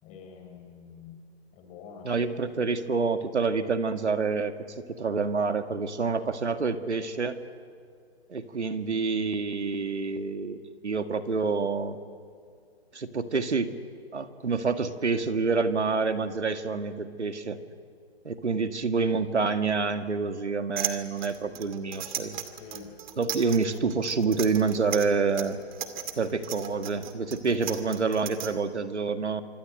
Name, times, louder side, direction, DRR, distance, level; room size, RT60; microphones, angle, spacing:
voice 1, 0.0-1.2 1.5-2.1 22.6-22.9, left 6 dB, 20° left, 3 dB, 4.1 m, -46 dB
voice 2, 2.0-4.5 5.0-7.4 8.3-12.0 12.9-13.7 14.1-17.6 18.3-22.4 23.2-25.6 26.2-29.4, right 4 dB, 90° right, 8 dB, 2.0 m, -27 dB
sound 1, 20.8-28.5, right 10 dB, 45° right, 2.3 m, -36 dB
26.5 x 24.5 x 7.9 m, 2.2 s
hypercardioid pair, 145°, 33 cm